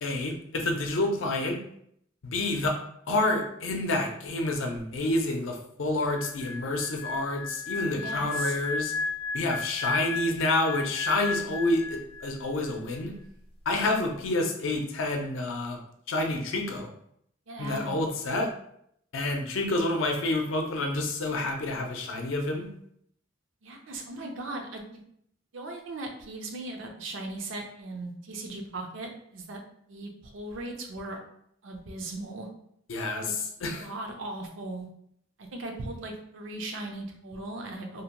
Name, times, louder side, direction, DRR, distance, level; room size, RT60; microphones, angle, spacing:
voice 1, 0.0-1.6 2.2-2.8 3.1-8.9 9.3-13.1 13.7-15.8 16.1-16.9 17.6-18.5 19.1-22.7 32.9-33.9, left 2 dB, 80° left, 3 dB, 0.5 m, -28 dB
sound 1, 6.0-12.4 12.7-13.0, left 4 dB, 30° left, 0.4 m, -34 dB
voice 2, 8.0-8.6 17.5-18.0 23.6-24.8 25.5-29.6 29.9-31.2 31.6-32.5 33.2-33.3 33.8-34.9 35.4-38.0, right 2 dB, 75° right, 3 dB, 0.5 m, -38 dB
2.8 x 2.2 x 2.9 m, 0.70 s
head